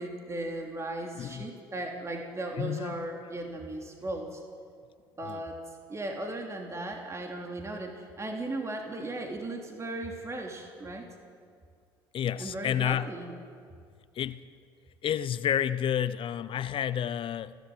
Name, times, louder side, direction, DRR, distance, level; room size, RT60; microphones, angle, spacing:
voice 1, 0.0-4.4 5.2-5.6 5.9-11.1 12.4-13.3, right 2 dB, 25° right, 3.1 m, -37 dB
voice 2, 1.2-1.5 2.6-2.9 5.2-5.4 12.1-13.1 14.2-14.4 15.0-17.6, left 9 dB, 50° left, 0.7 m, -30 dB
29.5 x 12.0 x 7.6 m
hypercardioid pair, 65°, 12 cm